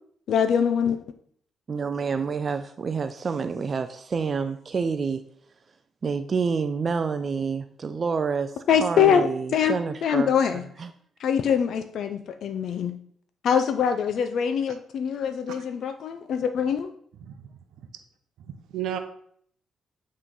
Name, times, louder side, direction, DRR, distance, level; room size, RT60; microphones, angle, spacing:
voice 1, 0.3-1.0 8.7-10.6 11.2-12.9 13.4-16.9, left 7 dB, 65° left, 8 dB, 0.4 m, -24 dB
voice 2, 1.7-5.2 6.0-10.3 10.8-10.9, right 5 dB, 40° right, 10 dB, 0.3 m, -28 dB
voice 3, 17.2-17.5 17.8-17.9 18.7-19.0, right 10 dB, 80° right, 7 dB, 0.6 m, -33 dB
7.9 x 3.2 x 3.8 m, 0.62 s
cardioid pair, 90°, 0 cm